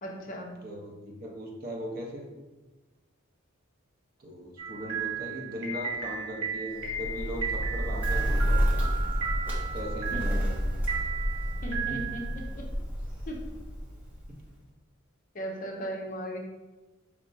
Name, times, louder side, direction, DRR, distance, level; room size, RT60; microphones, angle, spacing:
voice 1, 0.0-0.5 10.1-10.3 11.6-12.3 12.5-12.6 13.3-13.4 15.3-16.4, equal, 40° left, 0 dB, 0.6 m, -36 dB
voice 2, 0.6-2.3 4.2-9.0 9.7-10.7 11.9-12.0 14.3-14.4, equal, 45° right, -1 dB, 0.8 m, -39 dB
sound 1, 4.6-12.5, right 6 dB, 70° right, 1.3 m, -35 dB
Bird, 6.7-14.5, equal, 10° right, 0.8 m, -30 dB
5.0 x 3.2 x 2.7 m, 1.1 s
head